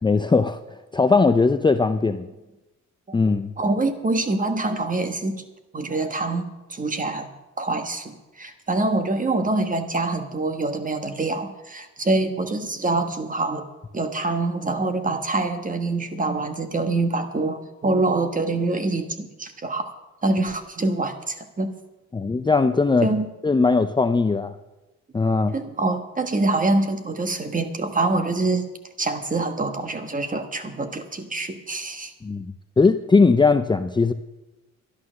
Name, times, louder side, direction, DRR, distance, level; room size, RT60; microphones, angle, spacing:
voice 1, 0.0-0.6 0.9-2.3 3.1-3.5 22.1-23.1 23.4-24.6 25.1-25.5 32.2-34.1, left 4 dB, 15° left, 9 dB, 0.5 m, -19 dB
voice 2, 3.6-5.4 5.7-7.3 7.6-13.6 13.9-19.9 20.2-21.7 23.0-23.3 25.5-28.7 29.0-32.1, right 2 dB, 25° right, 7 dB, 1.6 m, -25 dB
11.5 x 11.5 x 6.4 m, 1.0 s
cardioid pair, 90°, 30 cm